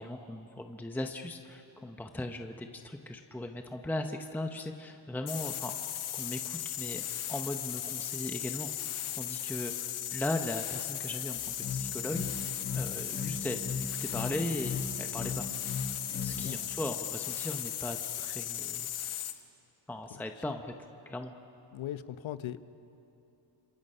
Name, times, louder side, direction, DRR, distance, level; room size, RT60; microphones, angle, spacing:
voice 1, 0.0-5.7 6.1-8.7 9.1-12.5 12.7-15.5 16.2-18.9 19.9-20.7 21.1-21.3, left 1 dB, 5° left, 5 dB, 0.8 m, -38 dB
sound 1, 5.3-19.4, left 11 dB, 90° left, 1.4 m, -37 dB
sound 2, 11.4-16.4, left 5 dB, 25° left, 7.3 m, -36 dB
voice 2, 21.7-22.6, left 11 dB, 75° left, 12 dB, 1.0 m, -38 dB
30.0 x 27.0 x 5.6 m, 2.8 s
wide cardioid pair, 150°, 47 cm